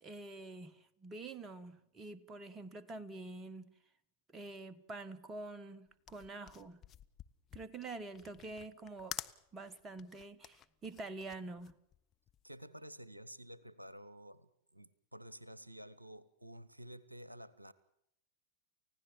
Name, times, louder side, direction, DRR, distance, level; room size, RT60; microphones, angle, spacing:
voice 1, 0.0-3.7 4.3-6.8 7.5-9.2 9.5-11.8, right 2 dB, 20° right, 1.4 m, -47 dB
sound 1, 5.9-12.5, left 11 dB, 30° left, 1.0 m, -50 dB
voice 2, 12.4-17.7, right 1 dB, 85° right, 0.8 m, -51 dB
30.0 x 16.0 x 7.4 m
figure-of-eight pair, 90°, 0 cm